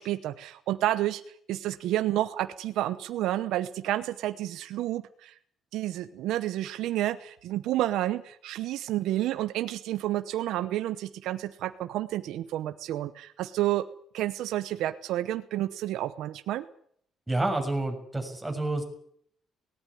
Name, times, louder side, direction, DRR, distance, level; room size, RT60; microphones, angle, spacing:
voice 1, 0.0-5.3 5.7-13.9 14.1-16.7, right 14 dB, 85° right, 12 dB, 0.9 m, -30 dB
voice 2, 17.3-18.8, right 2 dB, 5° right, 3 dB, 6.8 m, -29 dB
18.5 x 18.0 x 9.9 m, 0.65 s
cardioid pair, 110°, 0 cm